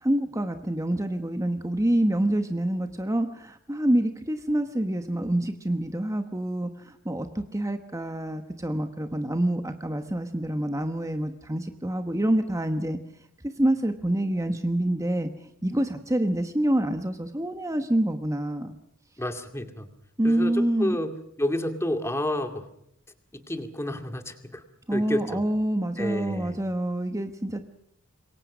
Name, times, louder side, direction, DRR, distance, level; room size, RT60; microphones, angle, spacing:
voice 1, 0.0-13.0 13.6-15.3 15.6-18.8 20.2-21.0 24.9-27.6, right 1 dB, 15° right, 7 dB, 1.2 m, -27 dB
voice 2, 19.2-19.9 20.2-22.6 23.3-24.6 24.9-25.4 26.0-26.6, left 1 dB, 15° left, 6 dB, 2.3 m, -30 dB
27.0 x 22.5 x 6.2 m, 0.75 s
head